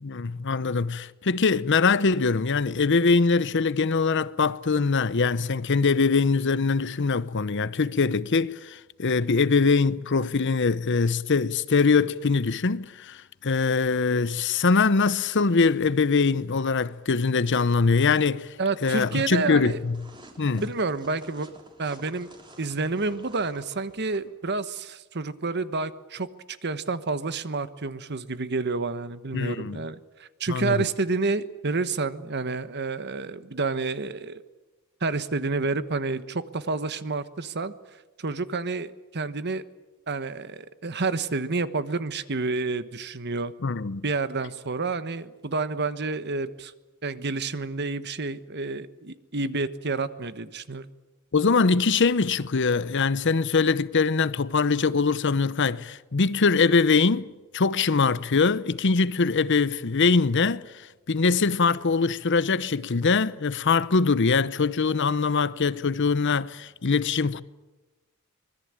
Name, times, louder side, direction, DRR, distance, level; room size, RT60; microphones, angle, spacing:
voice 1, 0.0-18.5 18.8-20.0 20.4-20.6 29.3-29.8 30.5-30.8 43.6-44.0 51.3-67.4, left 4 dB, 55° left, 0.7 m, -23 dB
voice 2, 18.6-19.8 20.6-21.5 21.8-22.3 22.6-26.3 26.6-34.4 35.0-37.7 38.2-39.6 40.1-43.5 44.0-46.7 47.0-50.9, right 3 dB, 50° right, 1.2 m, -29 dB
sound 1, 18.8-24.2, right 1 dB, 20° right, 3.5 m, -50 dB
25.0 x 21.0 x 8.8 m
head